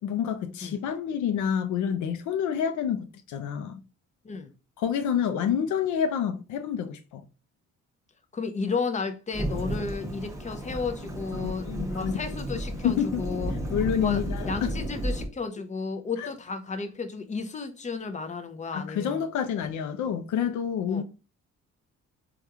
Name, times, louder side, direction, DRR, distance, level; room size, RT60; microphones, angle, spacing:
voice 1, 0.0-3.8 4.8-7.2 11.4-12.2 12.8-13.2 13.7-14.7 16.2-16.3 18.7-21.0, left 8 dB, 75° left, 0.5 m, -28 dB
voice 2, 8.3-13.6 14.0-19.3 20.9-21.0, left 4 dB, 25° left, 0.5 m, -33 dB
Thunderstorm / Rain, 9.3-15.3, right 1 dB, 10° right, 0.8 m, -33 dB
3.4 x 2.3 x 2.7 m
cardioid pair, 90°, 30 cm